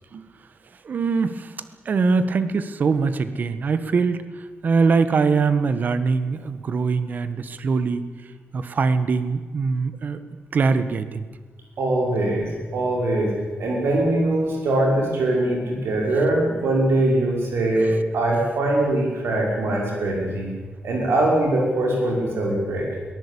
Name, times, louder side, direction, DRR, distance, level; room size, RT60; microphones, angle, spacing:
voice 1, 0.8-8.0 8.5-10.2 10.5-11.3, right 4 dB, 50° right, 12 dB, 1.3 m, -22 dB
voice 2, 11.8-13.3 13.6-20.5 20.8-22.9, right 1 dB, 90° right, -1 dB, 6.0 m, -22 dB
22.5 x 19.0 x 8.6 m, 1.4 s
wide cardioid pair, 175°, 4 cm